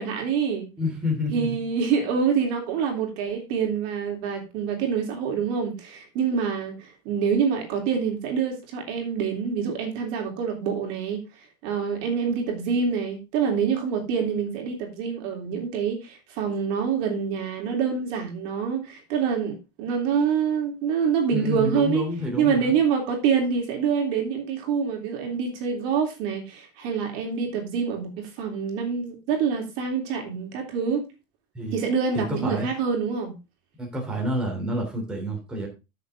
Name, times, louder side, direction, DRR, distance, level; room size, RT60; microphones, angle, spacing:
voice 1, 0.0-0.7 1.3-11.2 11.6-22.0 22.4-31.1 31.7-33.4, right 6 dB, 50° right, 3.4 m, -26 dB
voice 2, 0.8-1.6 21.3-22.7 31.5-31.8 32.1-32.7 33.8-35.7, left 1 dB, 5° right, 3.2 m, -28 dB
14.5 x 6.8 x 3.6 m
cardioid pair, 180°, 12 cm